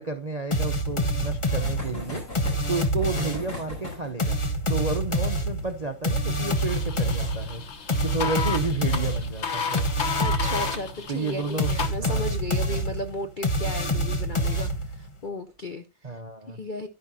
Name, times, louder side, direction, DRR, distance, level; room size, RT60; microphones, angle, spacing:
voice 1, 0.0-2.2 2.7-4.4 4.7-7.6 8.0-9.8 11.1-11.7 12.0-12.3 16.0-16.6, right 3 dB, 55° right, 0.4 m, -31 dB
sound 1, 0.5-3.6 4.2-10.9 11.6-15.1, equal, 20° left, 0.9 m, -27 dB
sound 2, 0.6-9.8 10.0-10.1 10.4-10.5 10.8-10.9 12.3-12.5 13.2-13.6, left 1 dB, 60° left, 6.4 m, -42 dB
sound 3, 6.5-11.9, left 6 dB, 45° left, 1.2 m, -33 dB
voice 2, 10.2-16.2 16.5-16.9, left 1 dB, 75° left, 0.4 m, -35 dB
10.5 x 10.5 x 2.7 m
omnidirectional pair, 2.0 m